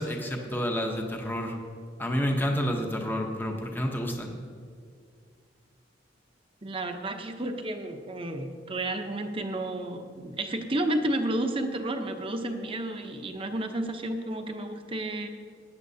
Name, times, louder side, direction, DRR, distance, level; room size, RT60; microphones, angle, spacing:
voice 1, 0.0-1.6 2.0-4.4, equal, 10° left, 2 dB, 0.9 m, -29 dB
voice 2, 6.6-15.3, right 1 dB, 30° right, 6 dB, 0.8 m, -31 dB
16.0 x 10.0 x 2.8 m, 2.2 s
head